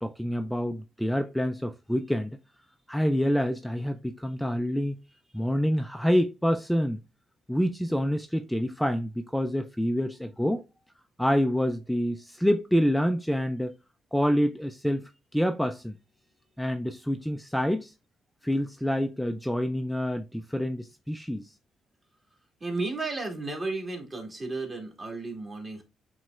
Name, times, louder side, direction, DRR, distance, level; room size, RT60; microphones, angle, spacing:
voice 1, 0.0-2.4 2.9-5.0 5.3-7.0 7.5-10.6 11.2-13.7 14.1-16.0 16.6-17.9 18.4-21.5, equal, ahead, 0.3 m, -27 dB
voice 2, 22.6-25.8, right 3 dB, 30° right, 1.7 m, -33 dB
7.2 x 3.1 x 2.4 m
cardioid pair, 90°, 0 cm